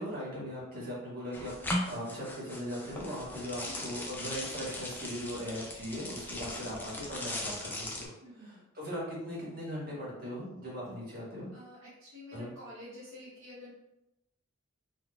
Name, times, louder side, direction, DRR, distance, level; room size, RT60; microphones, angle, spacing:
voice 1, 0.0-8.1 8.4-11.5 12.3-12.5, equal, 45° right, -6 dB, 1.3 m, -39 dB
sound 1, 1.3-8.1, left 1 dB, 10° left, 0.4 m, -39 dB
voice 2, 8.2-8.6 11.5-13.7, left 1 dB, 65° right, -9 dB, 0.8 m, -49 dB
3.7 x 2.4 x 2.3 m, 0.89 s
head